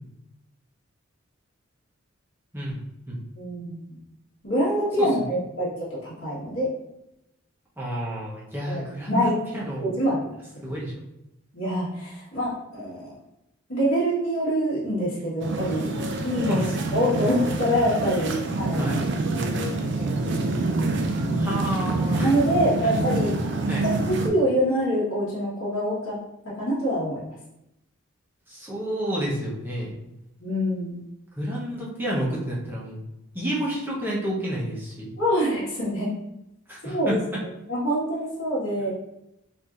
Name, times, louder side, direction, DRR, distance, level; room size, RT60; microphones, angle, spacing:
voice 1, 3.4-4.0 4.4-6.7 8.7-8.8 9.1-9.4 9.8-10.3 11.5-13.1 13.7-15.9 16.2-19.0 19.5-19.7 21.3-21.6 22.2-23.4 23.7-26.2 26.6-27.2 30.4-31.0 35.2-36.2 36.8-37.2 37.7-38.9, equal, 65° left, -8 dB, 1.3 m, -25 dB
voice 2, 5.0-5.4 7.8-9.2 9.5-9.9 10.6-10.9 16.5-16.8 18.8-19.0 21.3-22.3 23.7-23.8 28.5-29.9 31.4-33.0 33.3-35.1 36.7-37.2, equal, 10° right, -5 dB, 0.7 m, -30 dB
sound 1, 15.4-24.3, right 2 dB, 55° right, 0.4 m, -26 dB
4.3 x 2.6 x 2.4 m, 0.86 s
head